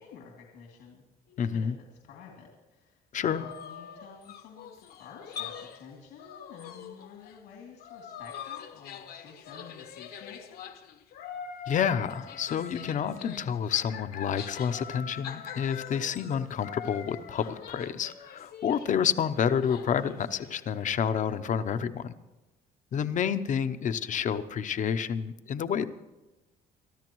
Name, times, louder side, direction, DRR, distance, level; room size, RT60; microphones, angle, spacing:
voice 1, 0.0-1.7 2.0-10.7 22.9-23.2, left 6 dB, 90° left, -1 dB, 2.8 m, -50 dB
voice 2, 1.4-1.7 3.1-3.4 11.7-22.1 22.9-25.9, left 8 dB, 50° left, 12 dB, 0.8 m, -29 dB
sound 1, 3.2-5.9 6.2-7.4 7.7-18.9 19.3-20.7, left 8 dB, 65° left, 1.1 m, -43 dB
24.5 x 13.0 x 3.1 m, 1.0 s
cardioid pair, 110°, 17 cm